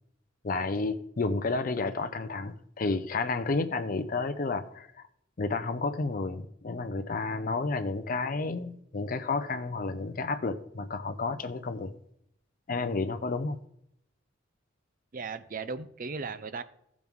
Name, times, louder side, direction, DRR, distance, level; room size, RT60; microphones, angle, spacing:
voice 1, 0.4-4.9 5.4-11.9 12.7-13.6, left 3 dB, 45° left, 10 dB, 0.5 m, -31 dB
voice 2, 15.1-16.6, right 4 dB, 45° right, 12 dB, 0.5 m, -36 dB
15.5 x 6.1 x 3.6 m, 0.75 s
head